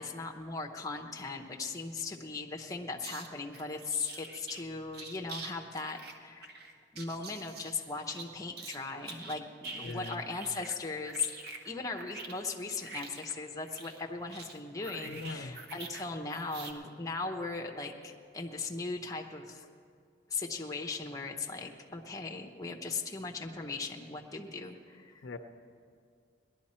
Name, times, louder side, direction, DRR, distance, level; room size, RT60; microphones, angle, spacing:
voice 1, 0.0-6.5 6.9-11.3 11.6-19.7 20.3-25.3, left 4 dB, 20° left, 3 dB, 0.8 m, -38 dB
sound 1, 3.0-3.3 3.5-4.6 4.9-5.5 5.8-8.8 9.0-10.8 11.0-16.1 16.3-16.7, right 3 dB, 60° right, 1.1 m, -46 dB
voice 2, 9.8-10.2 15.1-15.6 25.2-25.4, left 3 dB, 70° left, 8 dB, 0.6 m, -41 dB
18.5 x 11.5 x 4.3 m, 2.2 s
head